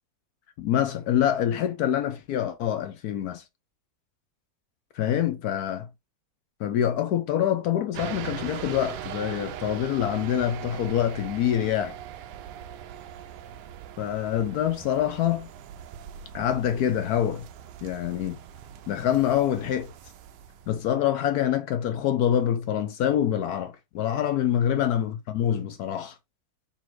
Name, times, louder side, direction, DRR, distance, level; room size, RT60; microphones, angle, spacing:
voice 1, 0.6-3.4 4.9-5.9 6.6-11.9 14.0-15.5 16.3-17.4 17.8-18.4 18.9-19.9 20.7-26.1, left 10 dB, 70° left, 0.9 m, -25 dB
sound 1, 7.9-20.9, right 10 dB, 75° right, 1.1 m, -41 dB
4.2 x 2.5 x 4.4 m
omnidirectional pair, 2.1 m